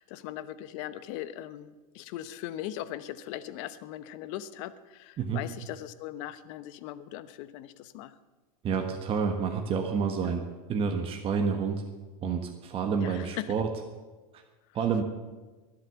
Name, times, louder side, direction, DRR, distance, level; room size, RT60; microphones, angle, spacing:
voice 1, 0.0-8.1 10.2-10.3 13.0-13.5, left 13 dB, 55° left, 13 dB, 1.0 m, -39 dB
voice 2, 8.6-10.4 10.7-11.8 12.2-13.7 14.7-15.0, right 6 dB, 30° right, 4 dB, 1.4 m, -29 dB
22.5 x 8.0 x 7.0 m, 1.3 s
supercardioid pair, 130°, 19 cm